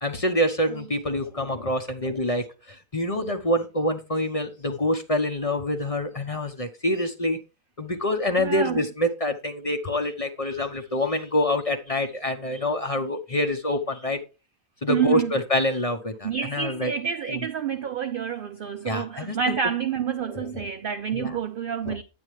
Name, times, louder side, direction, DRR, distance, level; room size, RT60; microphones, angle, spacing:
voice 1, 0.0-7.4 7.8-14.2 14.8-16.9 18.8-19.5 21.1-21.4 21.9-22.0, left 1 dB, 30° left, 0.8 m, -26 dB
voice 2, 8.4-8.8 14.9-15.3 16.2-22.0, right 8 dB, 65° right, 0.5 m, -28 dB
10.5 x 8.8 x 3.1 m
omnidirectional pair, 1.5 m